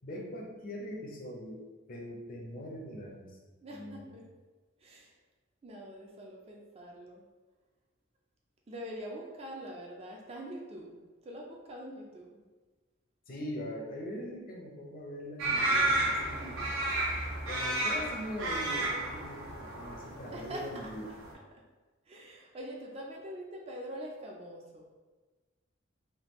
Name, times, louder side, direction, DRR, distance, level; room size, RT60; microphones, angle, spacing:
voice 1, 0.0-3.4 3.7-4.1 13.3-16.6 17.5-21.1, equal, 45° left, -1 dB, 0.5 m, -42 dB
voice 2, 3.6-4.2 4.8-5.1 5.6-7.2 8.7-12.4 20.3-20.6 21.1-21.2 22.1-24.9, equal, 30° right, -1 dB, 0.4 m, -44 dB
sound 1, 15.4-21.3, right 2 dB, 75° right, 0.6 m, -32 dB
3.4 x 2.3 x 3.0 m, 1.3 s
head